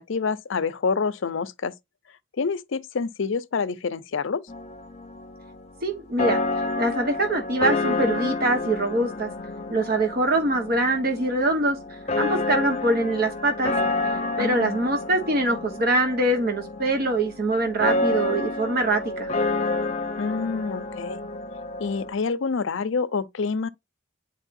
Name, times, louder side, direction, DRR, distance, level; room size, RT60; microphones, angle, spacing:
voice 1, 0.0-1.7 2.4-4.5 14.4-14.8 20.2-21.2 21.8-23.7, left 5 dB, 70° left, 0.5 m, -27 dB
sound 1, 4.5-22.1, left 2 dB, 35° left, 0.7 m, -29 dB
voice 2, 5.8-6.4 6.8-9.3 9.7-11.8 12.1-13.7 14.4-19.3, right 2 dB, 50° right, 1.2 m, -23 dB
9.9 x 4.3 x 2.5 m
head